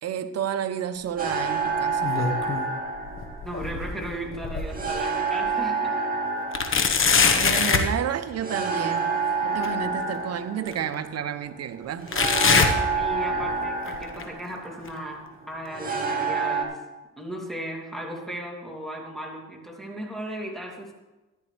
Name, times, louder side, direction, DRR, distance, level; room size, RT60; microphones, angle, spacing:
voice 1, 0.0-2.1 7.4-9.1 9.4-12.1, right 9 dB, 55° right, 0.8 m, -31 dB
sound 1, 1.2-16.6, right 4 dB, 30° right, 2.2 m, -29 dB
sound 2, 1.8-2.7 3.1-5.0 5.5-5.6 6.5-7.9 9.6-9.7 10.7-10.8 12.1-13.5 13.9-14.2 14.9-15.0 15.9-16.0, left 5 dB, 45° left, 1.2 m, -23 dB
voice 2, 3.4-6.0 12.9-16.7 17.2-20.9, right 1 dB, ahead, 2.8 m, -36 dB
14.0 x 11.0 x 3.4 m
cardioid pair, 90°, 30 cm